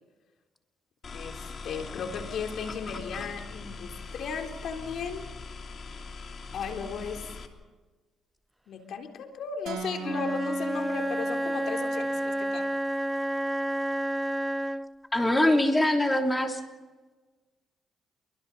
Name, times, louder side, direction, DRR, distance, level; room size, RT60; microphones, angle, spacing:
sound 1, 1.0-7.5, left 4 dB, 45° left, 2.8 m, -41 dB
voice 1, 1.1-5.3 6.5-7.3 8.7-12.7, left 6 dB, 70° left, 3 dB, 3.5 m, -36 dB
sound 2, 9.7-11.8, right 6 dB, 85° right, 5.2 m, -40 dB
Wind instrument woodwind instrument, 10.0-15.0, right 1 dB, 5° right, 0.7 m, -30 dB
voice 2, 15.1-16.6, left 1 dB, 10° left, 3 dB, 3.2 m, -23 dB
28.5 x 23.5 x 4.1 m, 1.3 s
cardioid pair, 90°, 0 cm